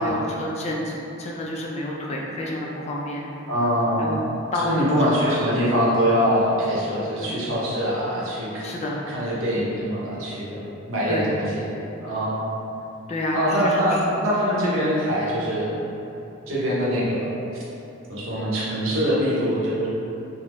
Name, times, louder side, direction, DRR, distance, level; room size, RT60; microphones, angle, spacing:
voice 1, 0.0-3.2 4.0-4.2 4.5-5.4 7.2-7.4 8.6-8.9 11.1-11.3 13.1-14.0 14.7-14.9, left 1 dB, 35° left, -2 dB, 0.3 m, -29 dB
voice 2, 3.5-4.2 4.6-8.7 9.1-10.6 10.9-11.7 12.0-12.6 13.3-15.8 16.5-17.3 18.1-19.9, equal, 70° right, -7 dB, 0.8 m, -23 dB
3.5 x 2.0 x 3.0 m, 3.0 s
head